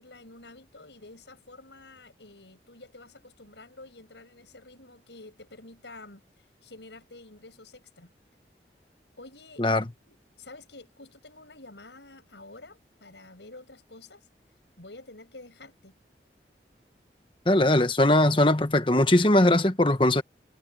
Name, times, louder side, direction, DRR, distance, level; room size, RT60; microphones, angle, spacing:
voice 1, 0.0-8.1 9.2-14.3 14.8-15.9, left 2 dB, 85° left, 6.8 m, -49 dB
voice 2, 17.5-20.2, left 1 dB, 30° left, 1.2 m, -20 dB
head